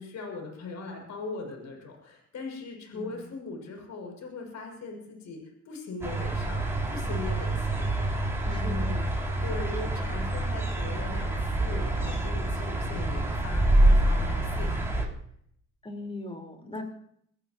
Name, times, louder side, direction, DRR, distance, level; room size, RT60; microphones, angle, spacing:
voice 1, 0.0-5.4 5.6-9.0 9.4-15.1 16.8-16.9, left 3 dB, 65° left, 2 dB, 6.8 m, -40 dB
voice 2, 2.9-3.2 8.5-9.1 15.8-16.8, left 2 dB, 20° left, 4 dB, 4.5 m, -39 dB
sound 1, 6.0-15.1, right 1 dB, 10° right, 5.9 m, -26 dB
25.0 x 16.0 x 3.1 m, 0.67 s
cardioid pair, 90°, 30 cm